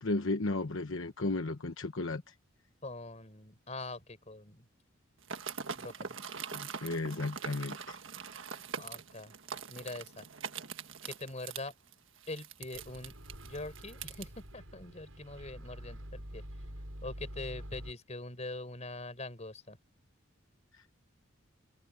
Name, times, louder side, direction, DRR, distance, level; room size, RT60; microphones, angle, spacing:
voice 1, 0.0-2.3 6.5-8.0 20.7-20.8, left 2 dB, 65° left, 1.1 m, -34 dB
voice 2, 2.8-4.7 5.7-6.2 8.8-9.3 9.7-10.3 11.0-11.7 12.3-13.1 13.4-16.4 17.0-19.8, left 2 dB, 35° left, 4.7 m, -43 dB
sound 1, 5.2-14.3, right 6 dB, 65° right, 1.6 m, -43 dB
Microwave oven, 12.7-17.9, equal, 85° right, 7.0 m, -47 dB
open air
head